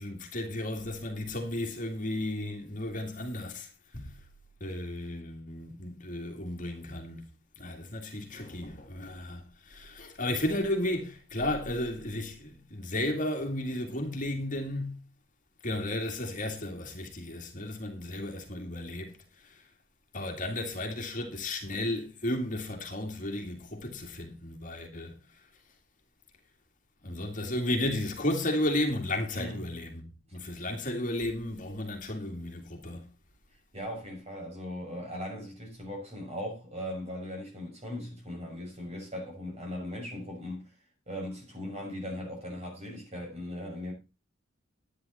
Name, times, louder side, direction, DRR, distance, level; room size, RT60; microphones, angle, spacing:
voice 1, 0.0-4.1 4.6-7.2 7.6-15.0 15.6-19.6 20.1-25.2 27.0-30.0 30.3-33.1, left 1 dB, 40° left, 2.2 m, -34 dB
voice 2, 33.7-40.7 41.1-43.9, left 1 dB, 35° right, 6.3 m, -38 dB
11.5 x 9.9 x 4.2 m
head